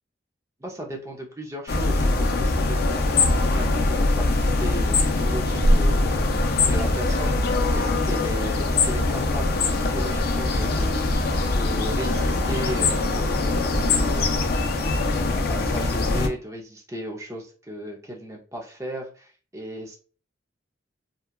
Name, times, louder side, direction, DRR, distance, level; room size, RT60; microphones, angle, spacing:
voice 1, 0.6-11.3 11.6-20.0, right 1 dB, 15° right, -1 dB, 0.6 m, -36 dB
sound 1, 1.7-16.3, left 2 dB, 55° left, 0.4 m, -22 dB
2.8 x 2.3 x 2.3 m, 0.39 s
head